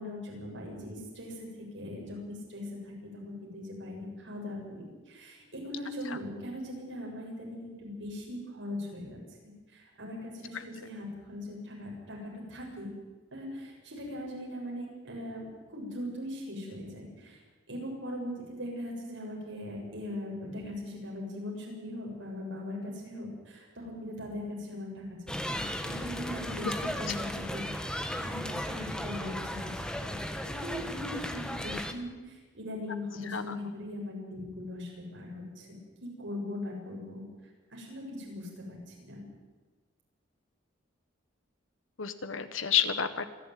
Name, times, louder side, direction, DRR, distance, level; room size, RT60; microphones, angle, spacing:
voice 1, 0.0-9.2 9.4-12.9 13.3-17.4 17.7-26.7 27.0-27.6 28.1-30.2 30.4-35.8 36.2-37.2 37.7-39.2, left 1 dB, 70° right, -2 dB, 7.4 m, -40 dB
sound 1, 25.3-31.9, equal, 5° left, 1.3 m, -36 dB
voice 2, 33.2-33.5 42.0-43.3, left 8 dB, 85° left, 11 dB, 1.6 m, -30 dB
26.5 x 11.5 x 9.3 m, 1.3 s
head